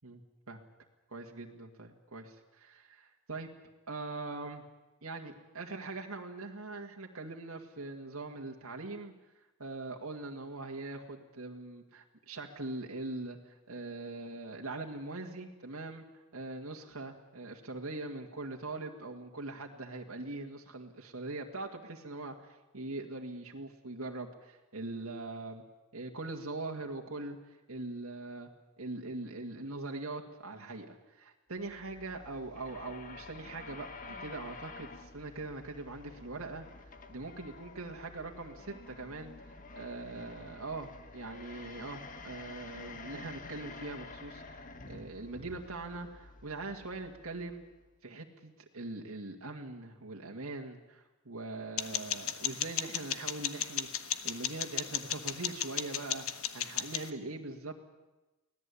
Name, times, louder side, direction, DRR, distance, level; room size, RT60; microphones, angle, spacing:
voice 1, 1.1-3.5 3.9-4.6 5.0-9.1 9.6-16.1 16.3-25.6 25.9-28.5 28.8-36.7 37.1-47.6 48.0-53.9 54.2-57.7, right 2 dB, 85° right, 1 dB, 2.1 m, -42 dB
sound 1, 31.6-47.9, left 3 dB, 40° left, 1.6 m, -50 dB
sound 2, 51.8-57.1, left 10 dB, 75° left, 1.2 m, -36 dB
24.5 x 17.5 x 8.5 m, 1.0 s
head